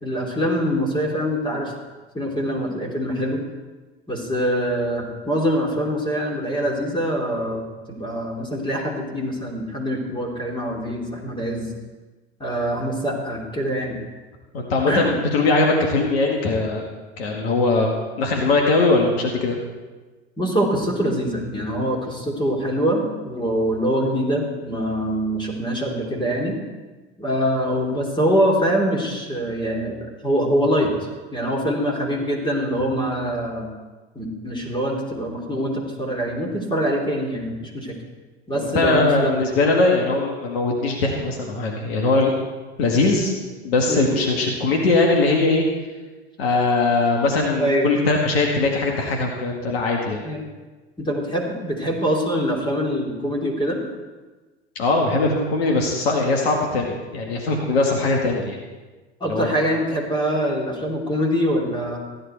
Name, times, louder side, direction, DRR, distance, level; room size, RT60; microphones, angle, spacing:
voice 1, 0.0-1.7 2.1-3.4 4.1-11.7 12.4-14.0 14.9-15.1 20.4-26.6 27.2-33.7 34.1-38.0 38.5-39.3 43.9-44.1 47.6-47.9 50.2-50.5 51.0-53.8 59.2-62.0, equal, 15° left, -2 dB, 3.2 m, -24 dB
voice 2, 14.5-16.8 17.2-19.6 38.6-42.3 42.8-43.3 43.6-45.6 46.4-50.2 54.8-58.6 59.2-59.6, left 3 dB, 65° left, 1 dB, 2.0 m, -20 dB
15.5 x 10.0 x 4.5 m, 1.3 s
figure-of-eight pair, 80°, 33 cm